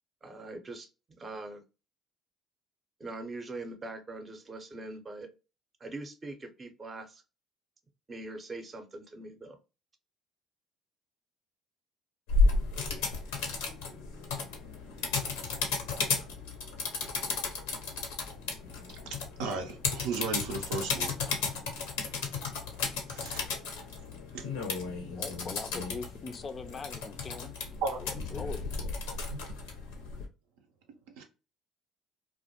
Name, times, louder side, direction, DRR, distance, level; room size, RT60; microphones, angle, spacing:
voice 1, 0.2-0.9 1.2-1.6 3.0-5.3 5.8-7.2 8.1-9.6, right 2 dB, 30° right, 0.6 m, -42 dB
sound 1, 12.3-30.3, left 4 dB, 85° left, 0.6 m, -33 dB
voice 2, 19.1-21.2 23.1-23.4 24.3-24.5 27.8-28.0 29.3-29.4 31.2-31.3, right 4 dB, 80° right, 0.5 m, -35 dB
voice 3, 25.0-28.6, left 4 dB, 40° left, 0.3 m, -42 dB
2.2 x 2.1 x 2.7 m
hypercardioid pair, 65°, 0 cm